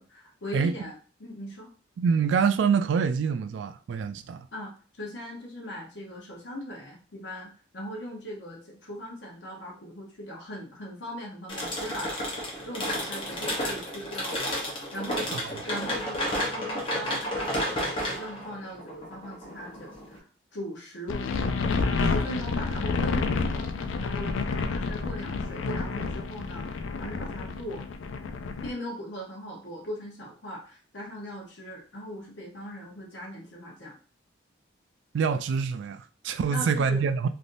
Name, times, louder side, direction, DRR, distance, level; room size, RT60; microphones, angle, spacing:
voice 1, 0.0-1.7 4.5-12.1 12.6-15.3 15.7-20.2 20.5-23.7 24.0-27.8 28.6-33.9 36.5-37.0, equal, 65° left, 0.9 m, -39 dB
voice 2, 0.5-0.9 2.0-4.5 15.3-15.4 35.1-37.3, right 6 dB, 70° right, 0.3 m, -26 dB
sound 1, 11.5-20.2, equal, 30° left, 0.9 m, -32 dB
sound 2, 21.1-28.7, left 4 dB, 90° left, 0.4 m, -29 dB
3.3 x 2.6 x 2.6 m
head